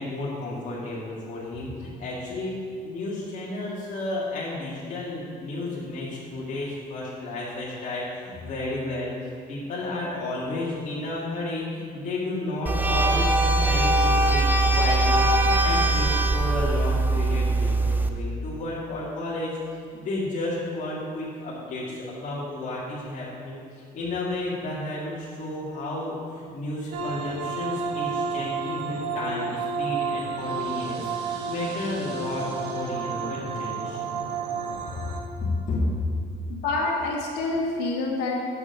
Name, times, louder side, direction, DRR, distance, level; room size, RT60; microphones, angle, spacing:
voice 1, 0.0-9.1 9.5-14.5 14.7-19.6 19.9-34.1 35.7-35.8, left 2 dB, 50° left, -8 dB, 1.9 m, -32 dB
sound 1, 12.7-18.1, right 2 dB, 10° right, 0.5 m, -21 dB
sound 2, 26.9-35.2, right 5 dB, 75° right, 1.2 m, -31 dB
voice 2, 36.5-38.4, left 3 dB, 90° left, -2 dB, 1.3 m, -27 dB
7.0 x 6.9 x 5.3 m, 2.2 s
cardioid pair, 110°, 17 cm